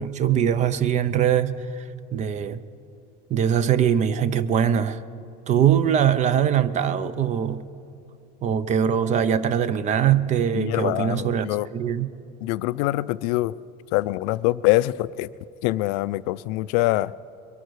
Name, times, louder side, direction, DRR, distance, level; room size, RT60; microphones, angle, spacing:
voice 1, 0.0-1.8 2.1-2.6 3.3-5.0 5.5-7.6 8.4-11.5 11.7-12.1, right 9 dB, 35° right, 0.6 m, -22 dB
voice 2, 10.5-11.7 12.4-13.5 13.9-15.3 15.6-17.1, left 18 dB, 75° left, 0.4 m, -24 dB
22.5 x 11.5 x 4.7 m
cardioid pair, 135°, 21 cm